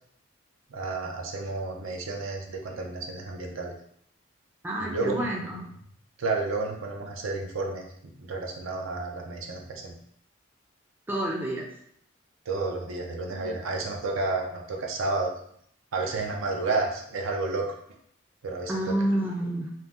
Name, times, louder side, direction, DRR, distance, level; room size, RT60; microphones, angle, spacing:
voice 1, 0.7-3.7 4.8-5.3 6.2-7.8 8.2-9.9 12.5-15.3 15.9-17.7 18.4-19.0, right 3 dB, 80° right, 1 dB, 0.5 m, -31 dB
voice 2, 4.6-5.6 11.1-11.7 18.7-19.7, right 1 dB, 10° right, -2 dB, 0.3 m, -29 dB
2.7 x 2.0 x 3.4 m, 0.67 s
head